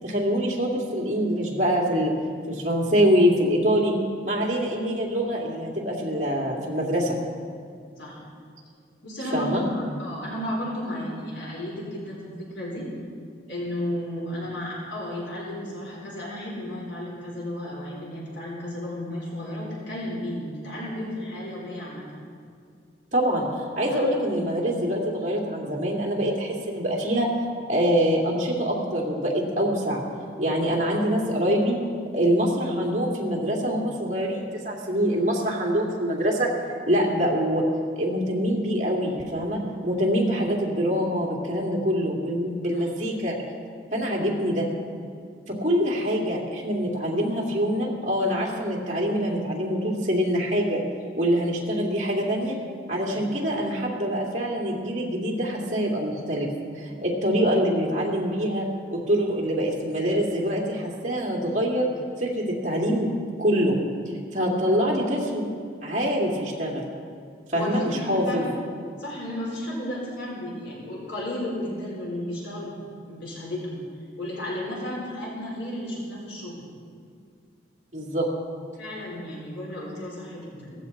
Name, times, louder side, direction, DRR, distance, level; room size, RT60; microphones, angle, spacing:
voice 1, 0.0-2.1 2.5-3.9 4.2-7.1 9.3-9.6 23.1-23.4 23.8-27.3 27.7-30.0 30.4-31.8 32.1-36.5 36.9-37.6 38.0-43.4 43.9-44.7 45.5-50.8 51.2-52.6 52.9-56.5 56.8-61.9 62.2-63.1 63.4-63.8 64.3-65.5 65.8-66.8 67.5-68.4 77.9-78.3, equal, 40° right, -2 dB, 2.7 m, -25 dB
voice 2, 6.1-6.4 8.0-8.2 9.0-12.9 13.5-22.1 23.9-24.1 42.7-42.9 53.0-53.2 67.5-68.5 69.0-73.8 74.2-76.6 78.7-80.7, left 1 dB, 75° left, -4 dB, 4.1 m, -33 dB
17.0 x 15.0 x 4.1 m, 2.3 s
head